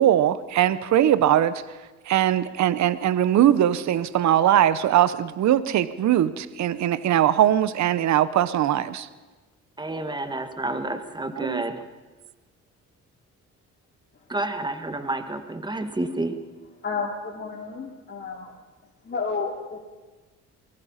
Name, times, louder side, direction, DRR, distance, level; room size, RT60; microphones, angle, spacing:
voice 1, 0.0-1.6 2.1-9.1 11.4-11.6, right 11 dB, 65° right, 0.9 m, -21 dB
voice 2, 9.8-11.8 14.3-16.4, right 2 dB, 15° right, 1.8 m, -29 dB
voice 3, 16.8-18.5 19.0-19.8, left 4 dB, 35° left, 3.0 m, -31 dB
23.5 x 20.5 x 5.7 m
cardioid pair, 90°, 30 cm